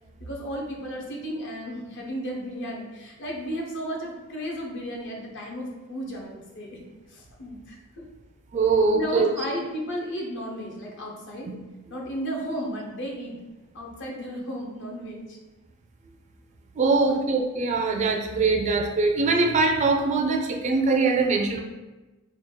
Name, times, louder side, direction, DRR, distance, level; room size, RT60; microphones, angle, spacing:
voice 1, 0.2-6.8 7.1-8.0 8.9-11.5 11.9-13.4 13.7-15.4 16.9-17.2, equal, 60° left, -1 dB, 0.8 m, -34 dB
voice 2, 8.5-9.3 11.5-11.6 16.8-21.6, right 3 dB, 35° right, 4 dB, 0.3 m, -22 dB
3.4 x 2.2 x 3.8 m, 1.1 s
head